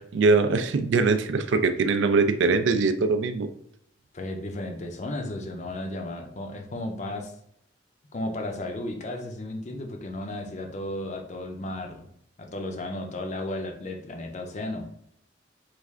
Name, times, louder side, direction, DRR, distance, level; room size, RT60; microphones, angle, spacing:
voice 1, 0.1-3.5, right 4 dB, 70° right, 10 dB, 0.3 m, -22 dB
voice 2, 4.1-7.3 8.1-12.1 12.4-14.8, left 1 dB, 35° left, 3 dB, 0.5 m, -34 dB
3.2 x 2.4 x 3.5 m, 0.72 s
head